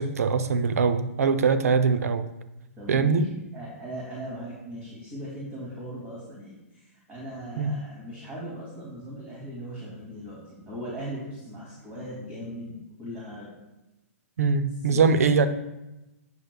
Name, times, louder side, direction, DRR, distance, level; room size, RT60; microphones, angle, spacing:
voice 1, 0.0-2.3 2.9-3.3 7.6-7.8 14.4-15.5, right 5 dB, 80° right, 11 dB, 0.5 m, -22 dB
voice 2, 2.8-13.6 14.8-15.2, equal, 20° right, -5 dB, 2.5 m, -39 dB
10.0 x 6.6 x 2.3 m, 0.98 s
hypercardioid pair, 135°, 8 cm